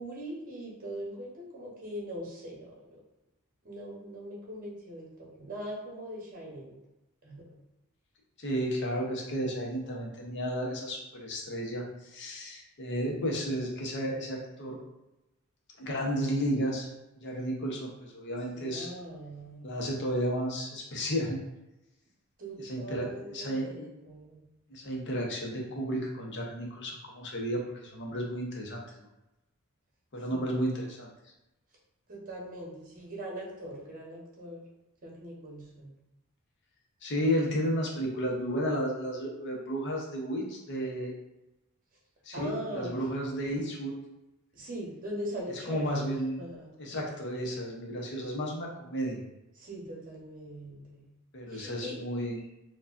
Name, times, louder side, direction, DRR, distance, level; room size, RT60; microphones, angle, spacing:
voice 1, 0.0-3.0 3.6-6.7 7.2-7.4 18.5-19.7 22.4-24.4 30.3-30.4 32.1-34.6 35.0-35.9 42.3-42.9 44.5-46.7 49.6-51.0 51.5-52.0, right 1 dB, 40° right, -3 dB, 1.1 m, -41 dB
voice 2, 8.4-14.8 15.8-16.9 17.2-18.9 19.6-21.4 22.6-23.9 24.7-29.1 30.1-31.1 37.0-41.2 42.2-43.9 45.7-46.4 46.8-49.2 51.3-52.4, equal, 55° left, -1 dB, 0.8 m, -33 dB
4.6 x 2.3 x 2.5 m, 0.94 s
head